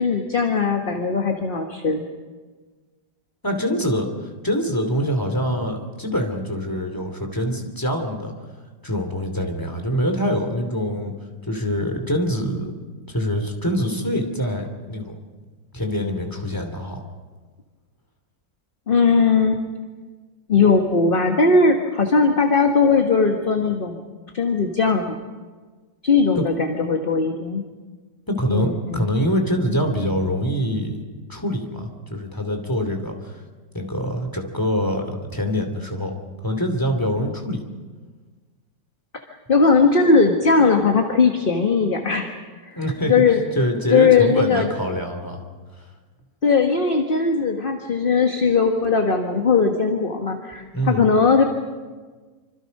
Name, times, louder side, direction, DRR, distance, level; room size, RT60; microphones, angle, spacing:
voice 1, 0.0-2.0 18.9-19.6 20.5-24.1 24.3-25.2 26.0-27.6 28.5-29.1 39.5-42.3 43.1-43.4 43.9-44.7 46.4-51.4, left 4 dB, 30° left, 3 dB, 1.6 m, -18 dB
voice 2, 3.4-8.3 8.8-11.1 11.4-12.7 13.1-15.1 15.7-17.0 26.3-26.4 28.3-31.0 31.3-33.3 33.7-36.1 36.4-37.6 42.7-43.1 43.5-45.4 50.7-51.1, equal, 10° left, 4 dB, 3.0 m, -24 dB
26.0 x 26.0 x 5.4 m, 1.4 s
omnidirectional pair, 2.0 m